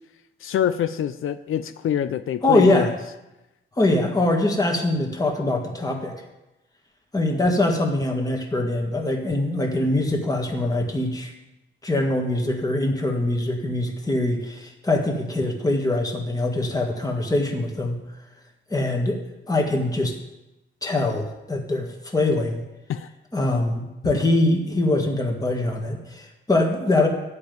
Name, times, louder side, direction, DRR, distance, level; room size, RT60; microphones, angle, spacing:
voice 1, 0.4-3.0 22.9-23.1, left 10 dB, 90° left, 11 dB, 0.6 m, -25 dB
voice 2, 2.4-2.9 3.8-6.1 7.1-11.3 11.8-18.0 18.7-19.2 19.5-20.1 20.8-22.6 23.3-27.1, left 2 dB, 15° left, 2 dB, 1.7 m, -23 dB
13.5 x 5.4 x 9.2 m, 0.97 s
wide cardioid pair, 160°, 21 cm